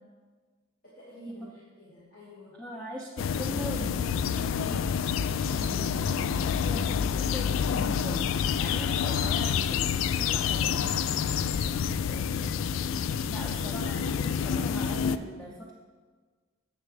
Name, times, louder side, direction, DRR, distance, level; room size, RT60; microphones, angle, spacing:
voice 1, 0.8-2.6 11.3-12.5, equal, 45° left, -10 dB, 2.0 m, -49 dB
voice 2, 2.6-10.8 13.3-15.7, equal, 5° left, -3 dB, 0.7 m, -41 dB
sound 1, 3.2-15.2, left 7 dB, 85° left, 0.3 m, -28 dB
9.7 x 7.5 x 3.3 m, 1.4 s
head